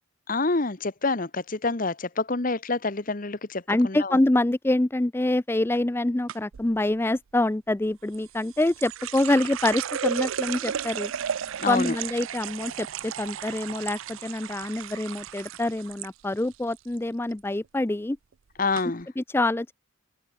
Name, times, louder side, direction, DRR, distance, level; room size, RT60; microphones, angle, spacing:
voice 1, 0.3-4.2 11.6-12.0 18.6-19.1, left 3 dB, 40° left, 1.0 m, -27 dB
voice 2, 3.7-11.1 11.7-18.2 19.2-19.7, left 1 dB, 10° left, 0.3 m, -26 dB
sound 1, 6.3-6.7 8.1-16.1 16.4-17.0 17.3-17.6 18.3-18.4 18.7-18.8, right 8 dB, 70° right, 0.5 m, -33 dB
head